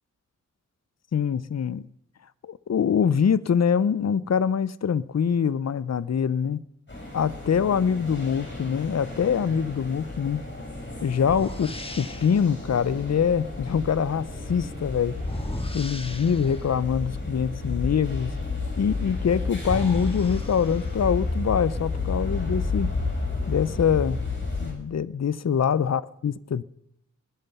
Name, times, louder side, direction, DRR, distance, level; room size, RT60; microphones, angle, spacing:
voice 1, 1.1-1.9 2.4-6.6 7.1-10.4 11.0-11.7 12.0-15.2 15.7-18.3 18.8-22.9 23.5-24.2 24.6-26.6, left 7 dB, 55° left, 0.7 m, -24 dB
sound 1, 6.9-24.7, left 3 dB, 35° left, 7.8 m, -32 dB
sound 2, 10.3-10.5 11.2-12.5 15.1-16.7 19.0-19.1 19.5-21.2, left 1 dB, 15° left, 2.1 m, -36 dB
20.5 x 11.5 x 5.5 m
wide cardioid pair, 70°, 32 cm